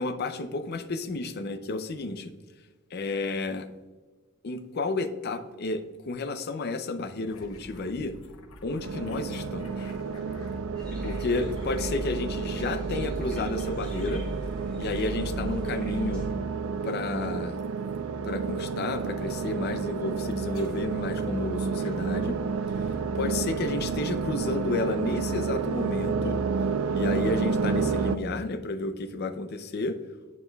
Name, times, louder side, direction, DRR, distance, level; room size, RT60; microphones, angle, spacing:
voice 1, 0.0-2.3 2.9-3.7 4.4-8.1 8.6-9.9 11.0-14.2 14.8-16.3 16.8-17.6 18.2-22.4 22.8-22.9 23.1-26.4 26.9-30.0, left 3 dB, 50° left, 9 dB, 0.5 m, -31 dB
sound 1, 7.3-14.7 15.1-15.9 17.6-18.0 19.0-19.2 20.3-21.1 21.5-25.9, left 1 dB, 70° left, 0.9 m, -49 dB
sound 2, 8.8-28.2, right 5 dB, 70° right, 0.4 m, -30 dB
sound 3, 10.8-16.3, right 1 dB, 5° left, 2.0 m, -37 dB
9.4 x 5.8 x 2.3 m, 1.3 s
head